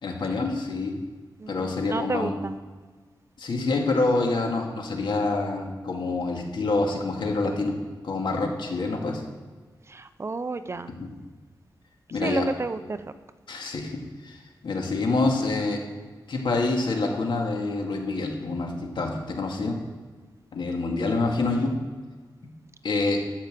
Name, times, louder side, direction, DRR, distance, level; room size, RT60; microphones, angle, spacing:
voice 1, 0.0-1.0 1.5-2.3 3.4-7.8 8.0-9.3 10.9-11.1 12.1-12.5 13.5-15.8 16.3-19.8 20.5-21.7 22.8-23.2, left 3 dB, 75° left, 1 dB, 2.2 m, -27 dB
voice 2, 1.4-2.5 9.9-10.9 12.2-12.8, right 3 dB, 35° right, 11 dB, 0.6 m, -31 dB
13.0 x 5.7 x 7.6 m, 1.5 s
wide cardioid pair, 120°, 8 cm